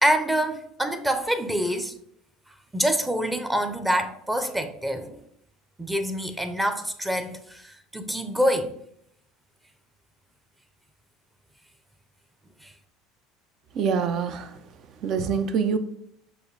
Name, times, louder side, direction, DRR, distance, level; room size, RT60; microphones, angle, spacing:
voice 1, 0.0-1.9 2.7-5.2 5.8-8.7 12.6-12.7, equal, 10° right, 0.6 m, -26 dB
voice 2, 13.7-14.6 15.0-15.8, right 6 dB, 55° right, 0.5 m, -25 dB
6.3 x 2.6 x 3.2 m
supercardioid pair, 90°, 0 cm